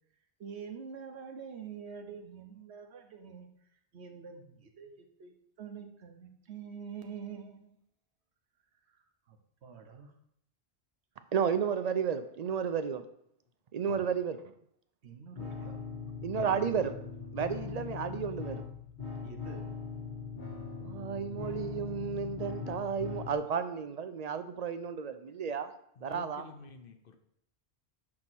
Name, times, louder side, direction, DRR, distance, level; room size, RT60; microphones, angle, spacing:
voice 1, 0.4-3.5 3.9-7.8 8.9-9.0 9.3-9.4 9.6-10.1 13.9-14.1 15.0-15.8 16.3-16.7 19.2-19.6, right 6 dB, 80° right, 5 dB, 1.2 m, -46 dB
voice 2, 11.3-13.0 13.7-14.4 16.2-16.9 17.3-18.6 20.8-25.7 26.0-26.4, right 7 dB, 55° right, 10 dB, 0.5 m, -32 dB
sound 1, 15.3-23.3, left 5 dB, 80° left, 2.1 m, -40 dB
voice 3, 26.0-27.2, left 4 dB, 60° left, 6 dB, 0.9 m, -50 dB
8.6 x 2.9 x 6.1 m, 0.71 s
omnidirectional pair, 1.1 m